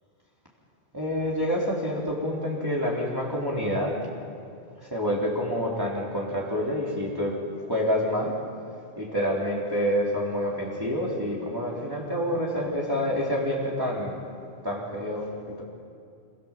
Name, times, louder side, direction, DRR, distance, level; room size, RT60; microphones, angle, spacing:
voice 1, 0.9-4.0 4.8-7.3 7.6-8.4 9.0-14.2 14.6-15.6, equal, 15° right, -4 dB, 4.2 m, -27 dB
27.0 x 27.0 x 7.7 m, 2.4 s
omnidirectional pair, 1.3 m